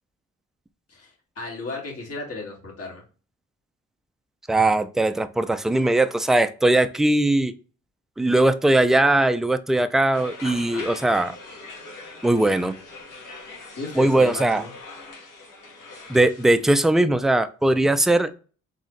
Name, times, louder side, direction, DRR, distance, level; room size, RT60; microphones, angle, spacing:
voice 1, 0.9-3.0 10.4-10.9 13.8-14.7, left 3 dB, 50° left, -1 dB, 2.2 m, -35 dB
voice 2, 4.5-7.5 8.2-11.4 12.2-12.8 14.0-14.6 16.1-18.3, right 2 dB, ahead, 10 dB, 0.3 m, -20 dB
sound 1, 10.1-16.9, left 3 dB, 80° left, 1.6 m, -42 dB
4.0 x 3.6 x 3.2 m, 0.37 s
cardioid pair, 90°, 30 cm